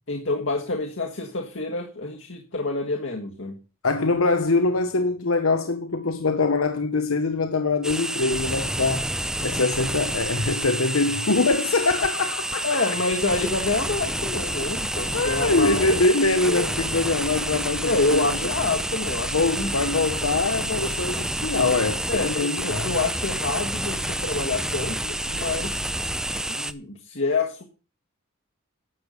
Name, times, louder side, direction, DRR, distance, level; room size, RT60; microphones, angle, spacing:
voice 1, 0.1-3.6 12.6-16.0 16.4-16.8 17.9-19.7 22.1-25.8 26.5-27.6, left 3 dB, 60° left, 1.6 m, -27 dB
voice 2, 3.8-9.1 9.4-12.7 15.1-18.3 19.3-22.9, left 3 dB, 85° left, 1.0 m, -23 dB
sound 1, 7.8-26.7, right 1 dB, 5° right, 0.5 m, -29 dB
11.5 x 7.2 x 6.8 m
head